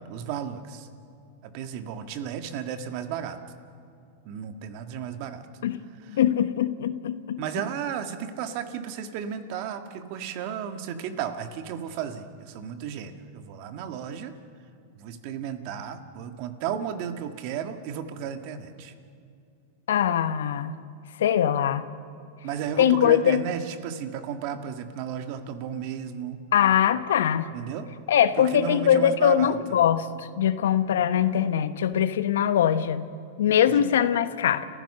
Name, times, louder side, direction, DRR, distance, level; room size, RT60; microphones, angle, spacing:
voice 1, 0.1-0.9 1.4-3.4 4.2-5.4 6.1-6.2 7.4-14.3 15.0-18.9 22.4-26.4 27.5-27.9 28.4-29.6 33.7-33.8, right 8 dB, 55° right, 8 dB, 1.9 m, -34 dB
voice 2, 6.1-7.4 19.9-20.8 21.2-21.8 22.8-23.4 26.5-27.5 28.1-33.0 33.4-34.7, left 9 dB, 80° left, 12 dB, 1.1 m, -22 dB
30.0 x 15.0 x 6.7 m, 2.5 s
hypercardioid pair, 120°, 0 cm